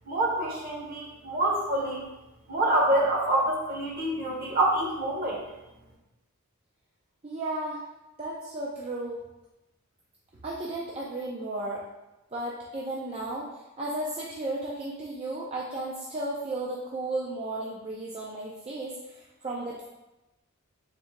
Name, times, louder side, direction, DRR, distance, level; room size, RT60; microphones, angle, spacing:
voice 1, 0.1-2.0 2.5-5.4, right 1 dB, 45° right, -2 dB, 1.0 m, -26 dB
voice 2, 7.2-7.8 8.2-9.2 10.4-11.8 12.3-19.9, right 2 dB, 30° right, -5 dB, 0.4 m, -34 dB
3.7 x 2.7 x 4.4 m, 1.0 s
head